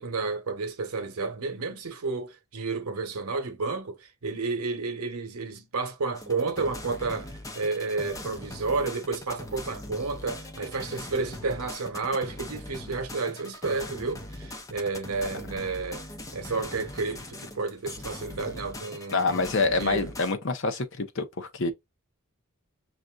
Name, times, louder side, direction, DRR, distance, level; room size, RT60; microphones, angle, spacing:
voice 1, 0.0-16.0 16.3-20.1, right 4 dB, 80° right, 0.9 m, -31 dB
sound 1, 6.1-20.3, left 1 dB, 15° left, 0.5 m, -41 dB
voice 2, 19.1-21.7, left 3 dB, 55° left, 0.7 m, -26 dB
5.7 x 2.6 x 2.3 m
head